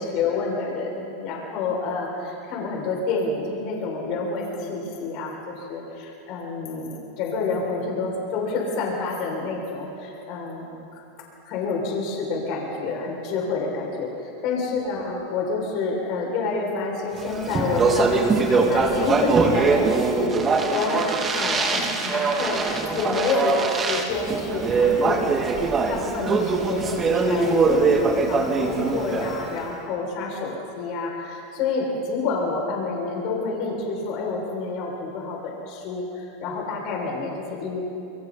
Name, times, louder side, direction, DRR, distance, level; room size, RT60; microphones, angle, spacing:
voice 1, 0.0-10.8 11.4-14.1 14.4-20.3 20.7-37.8, left 3 dB, 50° left, -2 dB, 6.7 m, -28 dB
Speech, 17.2-29.6, right 4 dB, 25° right, 3.0 m, -22 dB
29.0 x 24.0 x 4.4 m, 2.7 s
hypercardioid pair, 95°, 0 cm